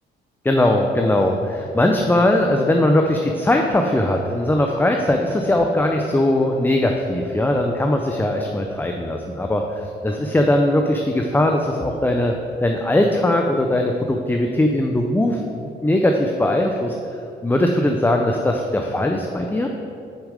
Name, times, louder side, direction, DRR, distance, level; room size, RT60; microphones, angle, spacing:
voice 1, 0.4-12.3 12.6-16.9 17.4-19.7, left 1 dB, 10° left, 2 dB, 0.5 m, -20 dB
6.4 x 5.0 x 4.9 m, 2.6 s
cardioid pair, 90°, 20 cm